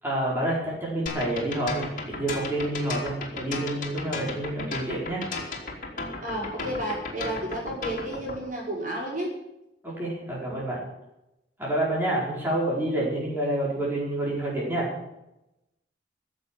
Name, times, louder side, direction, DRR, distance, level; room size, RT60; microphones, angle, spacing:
voice 1, 0.0-5.2 9.8-10.8 11.6-14.9, right 1 dB, 10° right, -6 dB, 4.8 m, -28 dB
sound 1, 1.1-8.4, left 3 dB, 50° left, 3.3 m, -34 dB
voice 2, 6.2-9.3, right 1 dB, 45° right, -3 dB, 5.4 m, -31 dB
15.0 x 7.8 x 9.8 m, 0.91 s
head